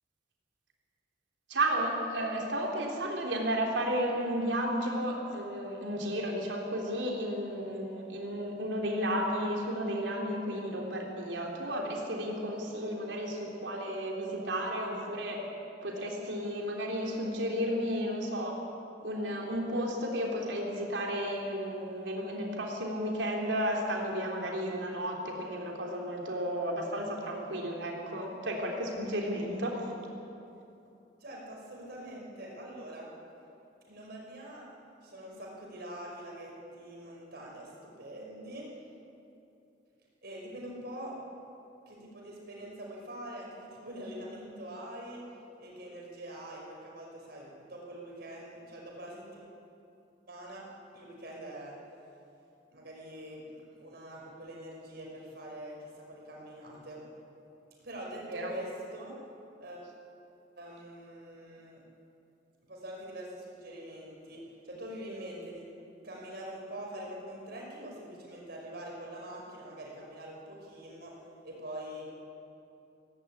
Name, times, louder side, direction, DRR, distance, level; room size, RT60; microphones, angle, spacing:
voice 1, 1.5-15.4 15.8-18.6 19.0-29.8 58.3-58.5, equal, 75° right, 0 dB, 3.8 m, -33 dB
voice 2, 31.2-33.1 33.9-34.7 35.0-38.7 40.2-41.2 41.9-45.2 45.6-49.5 50.3-50.7 50.9-51.7 52.7-57.0 57.8-59.1 59.6-59.9 60.6-61.8 62.7-65.7 66.0-71.2 71.4-72.1, right 1 dB, 60° right, -2 dB, 5.5 m, -44 dB
17.5 x 17.0 x 8.8 m, 2.8 s
head